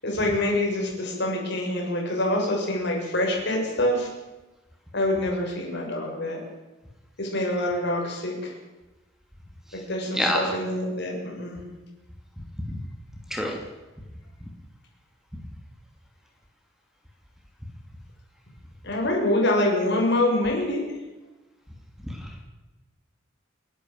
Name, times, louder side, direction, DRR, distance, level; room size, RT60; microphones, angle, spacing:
voice 1, 0.0-4.1 4.9-6.4 7.2-8.6 9.7-11.6 18.8-20.8, left 1 dB, 60° left, 0 dB, 6.9 m, -25 dB
voice 2, 10.1-10.5 12.7-12.8 13.3-13.6 22.0-22.4, equal, ahead, 2 dB, 2.8 m, -27 dB
30.0 x 12.0 x 7.9 m, 1.1 s
head